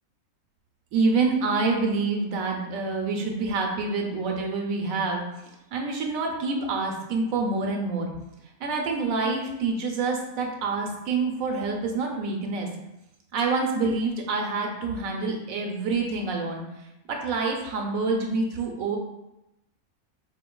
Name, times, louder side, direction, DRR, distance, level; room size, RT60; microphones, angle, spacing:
voice 1, 0.9-5.3 5.7-8.1 8.6-12.7 13.3-16.6 17.1-19.0, right 3 dB, 75° right, 1 dB, 1.0 m, -27 dB
4.2 x 2.6 x 2.2 m, 0.90 s
omnidirectional pair, 1.5 m